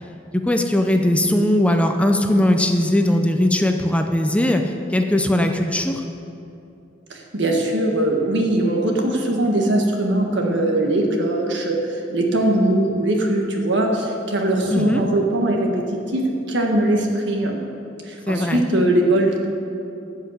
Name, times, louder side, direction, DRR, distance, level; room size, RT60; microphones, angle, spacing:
voice 1, 0.3-6.0 14.7-15.0 18.3-18.6, left 1 dB, 5° left, 5 dB, 0.5 m, -19 dB
voice 2, 7.1-17.6 18.1-19.5, right 1 dB, 65° right, 1 dB, 1.6 m, -21 dB
12.5 x 5.7 x 8.4 m, 2.8 s
head